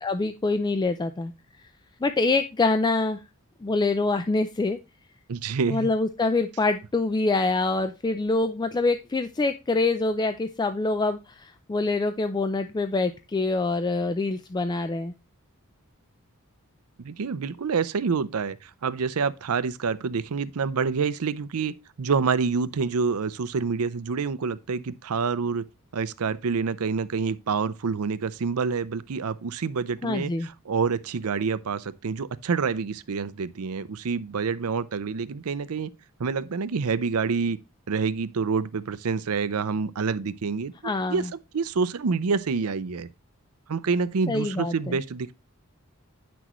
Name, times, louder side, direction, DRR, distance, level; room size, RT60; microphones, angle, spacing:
voice 1, 0.0-1.3 2.0-3.2 3.6-4.8 5.7-15.1 30.0-30.5 40.8-41.3 44.3-45.0, left 3 dB, 20° left, 0.4 m, -25 dB
voice 2, 5.3-5.9 17.0-25.6 25.9-35.9 36.2-37.6 37.9-41.2 41.5-43.1 43.7-45.3, right 5 dB, 75° right, 0.5 m, -27 dB
9.2 x 6.1 x 3.0 m
head